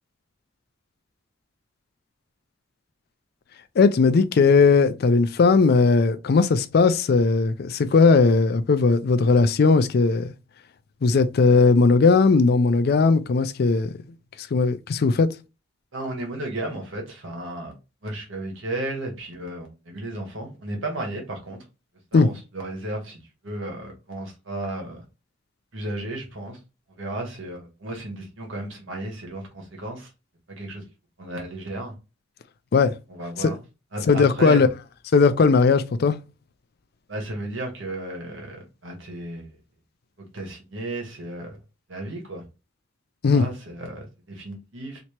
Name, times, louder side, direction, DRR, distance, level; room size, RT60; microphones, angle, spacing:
voice 1, 3.8-10.3 11.0-13.9 14.5-15.3 22.1-22.3 32.7-32.9 33.4-33.5 34.1-34.7 35.1-36.2 43.2-43.4, left 4 dB, 55° left, 0.4 m, -18 dB
voice 2, 15.9-17.8 18.0-21.6 22.1-25.0 25.7-26.6 26.9-30.1 30.5-30.8 31.2-31.9 33.1-33.6 33.9-34.7 37.1-39.6 40.2-41.6 41.9-42.4 43.3-45.0, right 1 dB, 85° right, 1.4 m, -34 dB
3.3 x 2.9 x 2.9 m
head